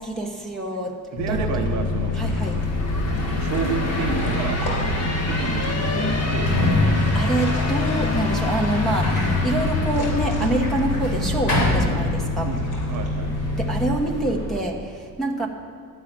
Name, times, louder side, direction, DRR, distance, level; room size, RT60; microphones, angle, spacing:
voice 1, 0.0-1.8 2.2-2.6 6.9-12.5 13.6-15.5, right 2 dB, ahead, -3 dB, 0.9 m, -26 dB
voice 2, 1.1-2.2 3.4-4.6 5.3-6.5 12.4-12.6 12.8-13.3, right 6 dB, 50° right, 5 dB, 0.7 m, -30 dB
sound 1, 1.2-14.0, left 3 dB, 80° left, 3.4 m, -27 dB
sound 2, 1.3-14.6, left 2 dB, 45° left, 1.5 m, -28 dB
Sliding door, 2.7-2.8 3.4-12.6 12.8-13.7, left 1 dB, 60° left, 3.2 m, -27 dB
11.5 x 5.6 x 8.6 m, 2.2 s
cardioid pair, 170°, 36 cm